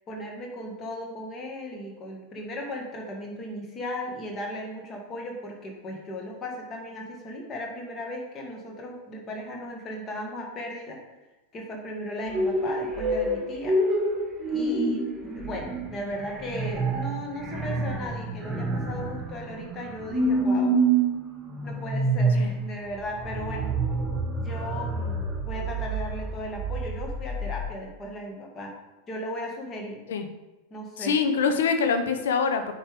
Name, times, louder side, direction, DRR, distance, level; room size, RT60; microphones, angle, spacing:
voice 1, 0.1-11.0 11.5-13.8 14.5-15.1 15.3-20.7 21.6-23.7 24.4-28.7 29.1-30.0 30.7-31.1, left 1 dB, 25° left, 1 dB, 2.1 m, -36 dB
sound 1, 12.3-27.6, right 2 dB, 15° right, 1.8 m, -28 dB
voice 2, 31.0-32.7, left 5 dB, 60° left, 8 dB, 0.9 m, -24 dB
9.4 x 5.5 x 3.7 m, 1.1 s
figure-of-eight pair, 90°, 0 cm